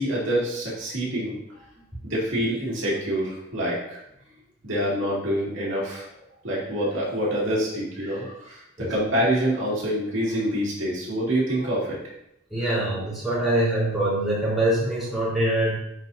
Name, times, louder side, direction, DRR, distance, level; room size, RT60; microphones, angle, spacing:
voice 1, 0.0-1.6 2.0-4.0 4.6-6.1 6.4-12.0 12.6-12.9, equal, 75° right, -6 dB, 2.3 m, -26 dB
voice 2, 12.5-15.8, right 1 dB, ahead, -10 dB, 2.7 m, -24 dB
10.5 x 4.2 x 2.7 m, 0.79 s
head